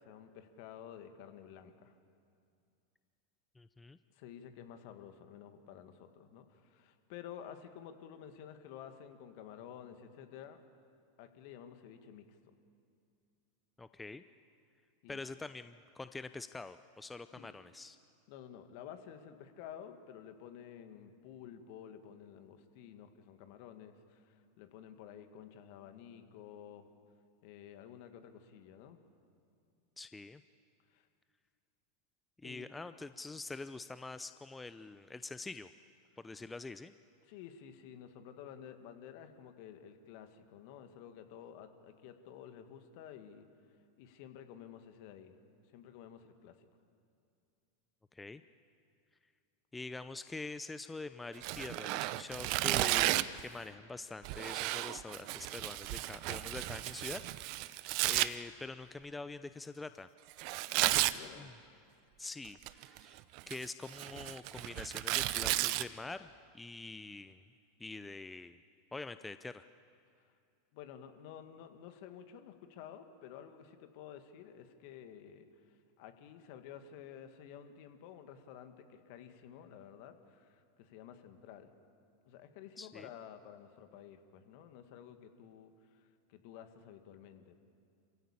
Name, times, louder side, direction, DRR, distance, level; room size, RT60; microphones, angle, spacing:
voice 1, 0.0-1.9 4.1-10.6 11.2-12.4 15.0-15.2 17.3-17.5 18.3-26.9 27.4-29.0 30.9-31.1 32.4-32.7 37.3-43.5 44.0-45.4 45.7-46.7 60.8-61.5 70.2-70.3 70.7-81.7 82.2-87.5, left 9 dB, 55° left, 8 dB, 2.0 m, -52 dB
voice 2, 3.6-4.0 13.8-14.2 15.1-18.0 30.0-30.4 32.4-35.7 36.2-36.9 48.1-48.4 49.7-57.2 57.6-57.7 58.1-60.1 61.4-61.5 62.2-67.4 67.8-68.6 68.9-69.7 82.8-83.1, left 3 dB, 10° left, 12 dB, 0.7 m, -45 dB
Tearing, 51.4-53.4 54.2-58.3 60.4-61.2 62.4-63.0 63.4-65.8, right 18 dB, 55° right, 0.7 m, -33 dB
27.0 x 16.0 x 8.7 m, 2.4 s
hypercardioid pair, 90°, 0 cm